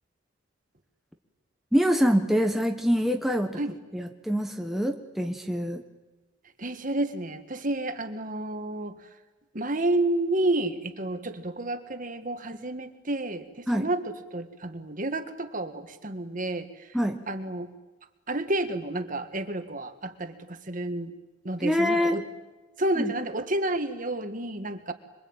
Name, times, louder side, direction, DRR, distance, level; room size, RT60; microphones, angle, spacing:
voice 1, 1.7-3.6 3.9-5.8 13.7-13.9 16.9-17.2 21.6-22.2 23.0-23.1, equal, ahead, 3 dB, 1.3 m, -25 dB
voice 2, 6.6-9.0 9.5-17.0 17.3-17.7 18.3-21.1 21.4-22.3 22.8-24.9, right 1 dB, 40° right, 8 dB, 1.9 m, -30 dB
26.5 x 23.5 x 9.0 m, 1.1 s
head